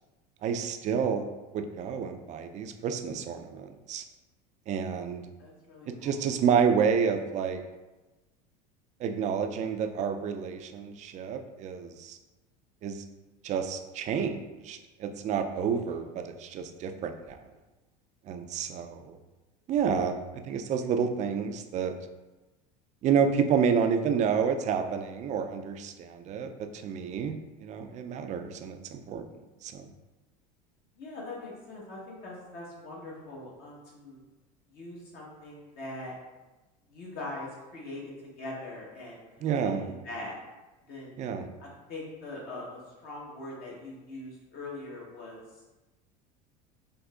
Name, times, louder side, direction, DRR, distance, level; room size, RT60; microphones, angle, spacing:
voice 1, 0.4-1.3 1.5-4.0 4.7-5.2 6.0-7.6 9.0-12.2 12.8-13.0 13.4-17.4 18.3-19.2 19.7-22.0 23.0-29.2 29.6-29.8 39.4-39.9 41.2-41.5, right 6 dB, 35° right, 7 dB, 0.4 m, -29 dB
voice 2, 5.4-6.2 15.7-16.0 31.0-34.2 34.7-36.1 36.9-40.3 40.9-41.2 41.6-45.4, left 2 dB, 50° left, -3 dB, 1.0 m, -42 dB
3.7 x 2.7 x 2.3 m, 1.1 s
hypercardioid pair, 85°, 20 cm